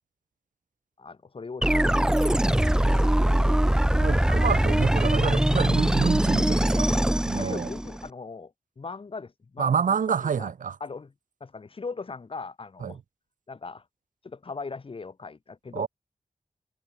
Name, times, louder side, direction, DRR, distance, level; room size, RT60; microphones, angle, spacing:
voice 1, 1.0-3.4 7.3-10.5 10.8-11.1 11.4-13.0 13.5-13.8 14.2-15.9, left 4 dB, 45° left, 1.6 m, -40 dB
sound 1, 1.6-8.1, right 1 dB, 5° right, 0.4 m, -22 dB
voice 2, 4.0-6.9 7.3-7.7 9.6-10.8 12.8-12.9 15.7-15.9, right 7 dB, 85° right, 1.0 m, -28 dB
wide cardioid pair, 135°, 13 cm